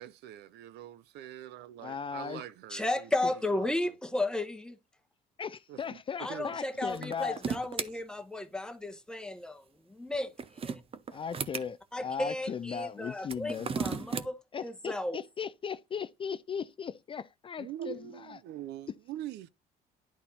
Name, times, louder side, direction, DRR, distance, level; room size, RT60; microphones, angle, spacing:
voice 1, 0.0-3.1 3.5-3.9 5.7-6.0 6.3-6.5 17.6-19.5, right 11 dB, 80° right, 0.6 m, -43 dB
voice 2, 1.8-2.4 3.2-3.3 5.4-7.4 11.1-14.1 14.5-18.4, left 6 dB, 30° left, 0.4 m, -37 dB
voice 3, 2.7-4.8 6.2-9.6 9.9-10.3 10.6-10.8 11.9-15.2, left 2 dB, 5° left, 1.2 m, -34 dB
sound 1, 6.9-7.9 10.1-11.7 13.2-14.3, right 5 dB, 35° right, 0.8 m, -35 dB
10.5 x 4.2 x 4.1 m
cardioid pair, 110°, 17 cm